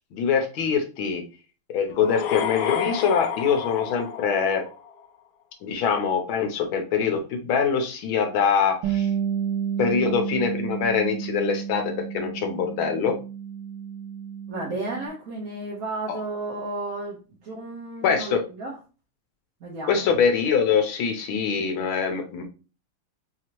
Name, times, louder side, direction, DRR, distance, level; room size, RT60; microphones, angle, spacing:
voice 1, 0.1-1.2 1.7-4.6 5.6-9.1 9.8-13.2 16.1-16.2 18.0-18.4 19.9-22.4, left 6 dB, 70° left, 5 dB, 1.5 m, -24 dB
sound 1, 1.9-5.0, left 7 dB, 90° left, 1.5 m, -30 dB
Bass guitar, 8.8-15.1, right 8 dB, 85° right, 1.5 m, -30 dB
voice 2, 14.5-18.8 19.6-20.1, right 2 dB, 50° right, -5 dB, 1.2 m, -33 dB
4.8 x 2.8 x 2.9 m, 0.34 s
omnidirectional pair, 2.4 m